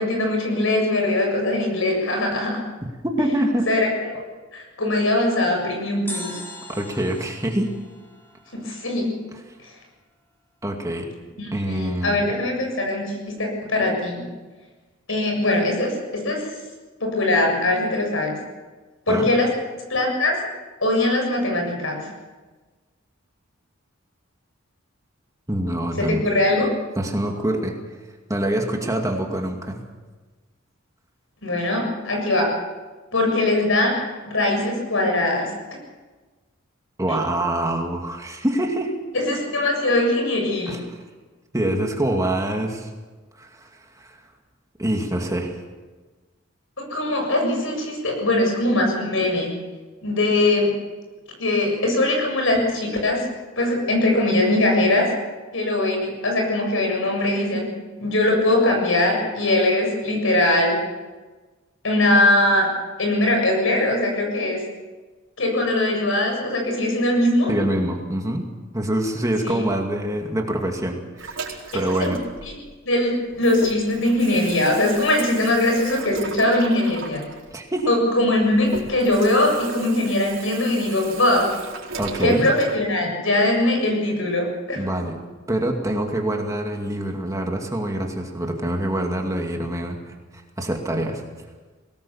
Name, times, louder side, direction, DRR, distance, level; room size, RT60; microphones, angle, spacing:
voice 1, 0.0-2.6 3.7-4.2 4.5-6.4 8.5-9.1 11.4-14.3 15.1-16.4 17.0-18.4 19.1-19.5 19.9-20.4 20.8-22.1 26.0-26.7 31.4-32.6 33.1-34.0 34.3-35.5 37.1-37.2 39.1-40.8 46.8-49.6 50.0-50.7 51.4-53.3 53.6-55.1 55.5-57.7 58.0-60.8 61.8-62.7 63.0-64.6 65.4-67.5 69.4-69.6 71.7-72.2 72.5-72.6 72.9-77.3 77.9-81.5 82.2-84.8, left 1 dB, 70° left, 2 dB, 7.2 m, -21 dB
voice 2, 3.0-3.7 6.7-7.7 10.6-11.1 11.5-12.3 19.1-19.3 25.5-26.2 27.0-27.8 28.3-29.8 37.0-39.0 40.7-41.0 41.5-42.9 43.4-43.7 44.0-44.2 44.8-45.6 67.5-68.5 68.7-71.5 71.7-72.2 77.5-77.9 82.0-82.5 84.8-85.2 85.5-91.2, right 1 dB, 15° right, 2 dB, 2.3 m, -25 dB
sound 1, 6.1-9.2 9.4-9.5, left 1 dB, 10° left, 4.1 m, -39 dB
Water tap faucet / Sink (filling or washing), 71.2-73.0 73.3-82.8, right 4 dB, 65° right, 4.5 m, -37 dB
22.0 x 19.0 x 7.2 m, 1.3 s
head